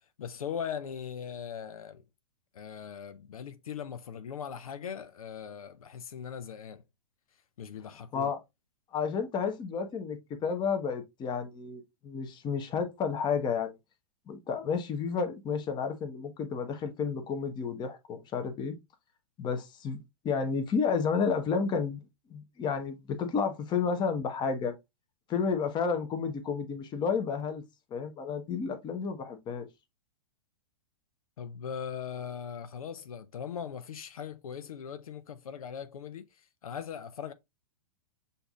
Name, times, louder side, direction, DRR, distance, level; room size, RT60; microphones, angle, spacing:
voice 1, 0.2-2.0 2.5-6.8 7.6-8.3 31.4-37.3, left 7 dB, 80° left, 0.6 m, -40 dB
voice 2, 8.9-13.7 14.3-18.8 19.4-20.0 20.2-24.7 25.3-27.6 27.9-29.7, left 5 dB, 25° left, 0.9 m, -31 dB
6.7 x 2.6 x 2.4 m
hypercardioid pair, 115°, 18 cm